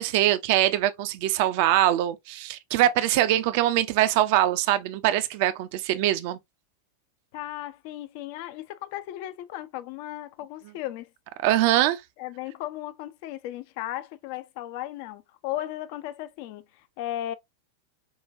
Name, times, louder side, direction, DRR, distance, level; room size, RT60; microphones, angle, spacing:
voice 1, 0.0-6.4 11.4-12.0, right 13 dB, 45° right, 0.5 m, -23 dB
voice 2, 7.3-11.1 12.2-17.3, left 13 dB, 45° left, 0.4 m, -36 dB
5.4 x 2.3 x 2.5 m
figure-of-eight pair, 90°, 0 cm